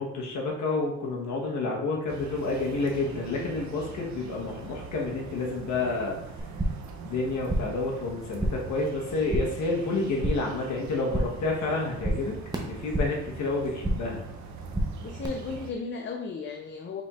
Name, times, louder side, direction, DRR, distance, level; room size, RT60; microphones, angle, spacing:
voice 1, 0.0-6.2 7.0-12.4 12.7-14.2, left 3 dB, 70° left, -1 dB, 1.2 m, -29 dB
sound 1, 2.1-15.7, right 5 dB, 70° right, 0.7 m, -43 dB
sound 2, 6.4-6.9 7.2-7.8 8.1-8.8 9.0-9.6 9.9-10.6 10.9-11.5 11.7-13.3 13.6-14.2 14.5-15.3, right 1 dB, 15° right, 0.8 m, -31 dB
voice 2, 15.0-17.0, left 4 dB, 40° left, 3 dB, 0.5 m, -35 dB
5.1 x 4.2 x 2.4 m, 0.81 s
cardioid pair, 90°, 30 cm